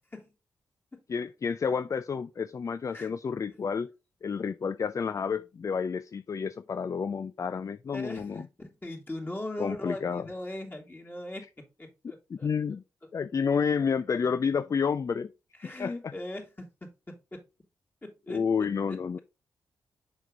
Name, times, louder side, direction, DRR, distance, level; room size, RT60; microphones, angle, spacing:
voice 1, 1.1-3.9 4.2-8.5 9.6-10.3 12.3-12.8 13.1-15.3 15.8-15.9 18.3-19.2, left 6 dB, 45° left, 0.4 m, -30 dB
voice 2, 7.9-12.5 15.6-17.4 18.0-19.2, left 1 dB, 25° left, 2.9 m, -40 dB
6.3 x 5.2 x 3.9 m
supercardioid pair, 40°, 8 cm